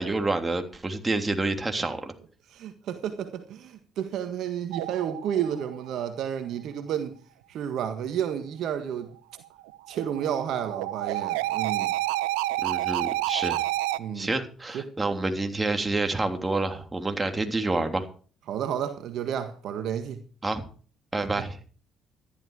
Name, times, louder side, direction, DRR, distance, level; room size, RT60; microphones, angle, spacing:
voice 1, 0.0-2.1 12.6-13.6 14.1-18.1 20.4-20.6 21.1-21.6, right 2 dB, 20° right, 3.1 m, -28 dB
voice 2, 2.5-7.2 7.5-9.1 9.9-11.9 14.0-14.3 14.7-14.8 18.5-20.2, right 9 dB, 65° right, 1.6 m, -31 dB
sound 1, 4.7-6.0 9.6-14.0, right 16 dB, 80° right, 0.6 m, -29 dB
13.5 x 12.0 x 4.8 m
hypercardioid pair, 55°, 0 cm